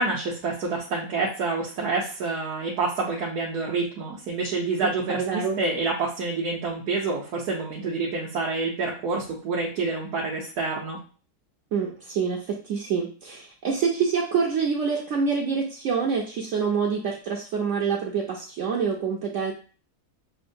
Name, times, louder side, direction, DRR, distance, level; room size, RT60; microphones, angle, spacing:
voice 1, 0.0-11.0, right 3 dB, 85° right, -4 dB, 1.3 m, -28 dB
voice 2, 5.1-5.6 11.7-19.5, right 6 dB, 65° right, -2 dB, 0.9 m, -26 dB
6.1 x 2.1 x 2.6 m, 0.39 s
omnidirectional pair, 1.6 m